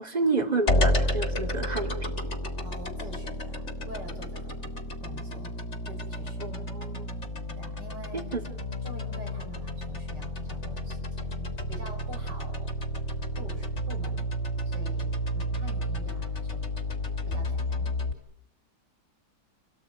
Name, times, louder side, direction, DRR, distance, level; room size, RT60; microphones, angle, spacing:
voice 1, 0.0-2.1 6.4-7.2 8.1-8.4, right 3 dB, 25° right, 7 dB, 3.8 m, -30 dB
sound 1, 0.7-18.1, equal, 40° left, 3.4 m, -31 dB
voice 2, 2.6-4.7 5.0-5.5 5.9-6.5 7.6-8.3 8.8-12.8 13.3-14.3 14.6-16.6 17.3-17.9, equal, 85° right, 3 dB, 7.5 m, -46 dB
29.5 x 18.5 x 9.4 m, 0.65 s
omnidirectional pair, 1.8 m